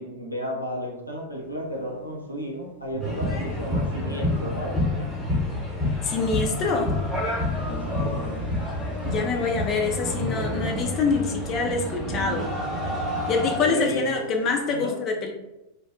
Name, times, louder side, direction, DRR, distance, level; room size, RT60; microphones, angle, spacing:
voice 1, 0.0-5.0 7.7-8.4 13.6-14.4 14.7-14.9, equal, 90° left, -2 dB, 0.5 m, -33 dB
sound 1, 0.9-14.8, right 8 dB, 85° right, 0.9 m, -44 dB
sound 2, 2.8-4.8 5.3-7.4 7.9-8.3 8.8-11.0 11.3-14.1, right 2 dB, 55° right, 0.4 m, -38 dB
sound 3, 3.0-13.6, left 1 dB, 5° left, 0.8 m, -29 dB
voice 2, 6.0-7.0 9.0-12.5 13.3-15.3, left 4 dB, 30° left, 2 dB, 0.3 m, -25 dB
2.5 x 2.0 x 2.5 m, 0.94 s
figure-of-eight pair, 90°, 0 cm